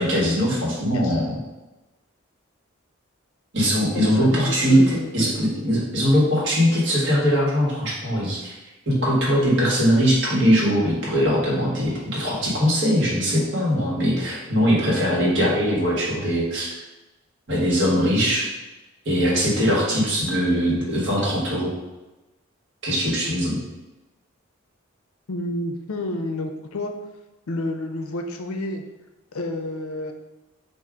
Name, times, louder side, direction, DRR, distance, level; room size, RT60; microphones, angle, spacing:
voice 1, 0.0-1.3 3.5-8.5 8.9-16.7 17.5-18.5 19.0-21.7 22.8-23.6, equal, 55° right, -5 dB, 1.3 m, -21 dB
voice 2, 3.9-5.3 25.3-26.9 27.5-28.8 29.3-30.1, left 1 dB, 80° left, 4 dB, 0.5 m, -29 dB
4.7 x 2.5 x 3.6 m, 1.1 s
head